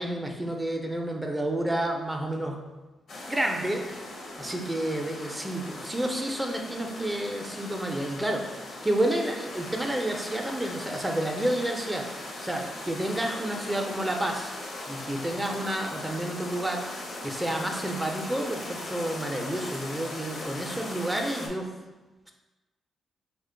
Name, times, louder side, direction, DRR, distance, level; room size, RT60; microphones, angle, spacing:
voice 1, 0.0-2.6 3.3-4.1 4.4-12.1 12.4-14.5 14.8-21.7, right 1 dB, 10° right, 2 dB, 0.4 m, -30 dB
sound 1, 3.1-21.5, left 2 dB, 60° left, 0.6 m, -39 dB
2.9 x 2.1 x 3.7 m, 1.2 s
cardioid pair, 75°, 0 cm